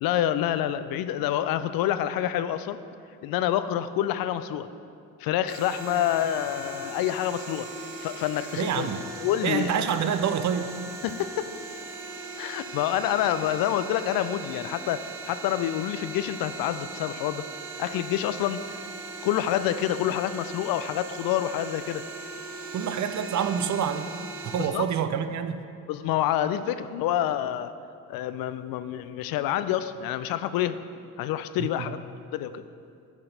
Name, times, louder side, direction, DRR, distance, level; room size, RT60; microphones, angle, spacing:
voice 1, 0.0-2.8 3.2-4.7 5.2-7.7 8.0-8.9 9.2-9.9 11.0-11.5 12.4-17.4 17.8-18.8 19.2-22.0 24.6-24.9 25.9-27.7 28.1-30.8 31.2-32.0 32.3-32.6, left 11 dB, 55° left, 12 dB, 0.5 m, -27 dB
sound 1, 5.5-24.7, right 3 dB, 85° right, 1.1 m, -39 dB
voice 2, 8.6-9.0 9.4-10.7 22.7-24.1 24.4-25.6 31.6-31.9, right 8 dB, 40° right, 9 dB, 0.6 m, -27 dB
10.5 x 5.7 x 3.9 m, 2.4 s
hypercardioid pair, 50°, 44 cm